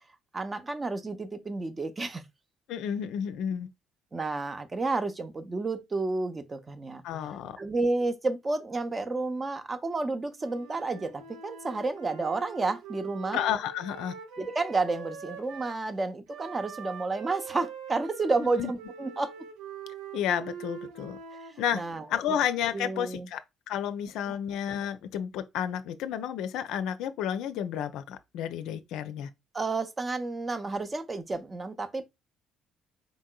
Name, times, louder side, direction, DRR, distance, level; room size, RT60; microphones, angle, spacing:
voice 1, 0.3-2.2 4.1-7.0 7.6-13.4 14.4-19.3 21.7-22.0 22.7-23.3 24.3-24.4 29.5-32.0, right 3 dB, 30° right, 0.6 m, -31 dB
voice 2, 2.7-3.7 7.0-7.6 13.3-14.1 18.6-18.7 20.1-21.2 21.6-21.8 22.1-23.4 23.7-29.3, left 9 dB, 65° left, 0.4 m, -31 dB
Wind instrument woodwind instrument, 10.4-15.8 16.3-22.2, right 7 dB, 75° right, 0.7 m, -44 dB
4.1 x 3.6 x 2.2 m
hypercardioid pair, 50°, 0 cm